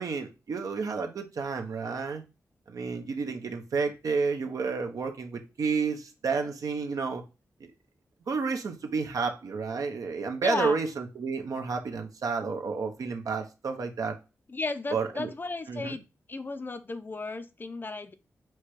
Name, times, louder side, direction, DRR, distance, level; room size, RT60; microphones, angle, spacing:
voice 1, 0.0-2.2 2.7-7.2 7.6-7.7 8.3-14.2 14.9-15.3 15.7-16.0, right 5 dB, 75° right, 4 dB, 0.8 m, -31 dB
voice 2, 10.4-10.8 14.5-16.0 16.3-18.1, left 3 dB, 35° left, 11 dB, 0.5 m, -34 dB
4.5 x 2.2 x 4.7 m, 0.29 s
cardioid pair, 70°, 6 cm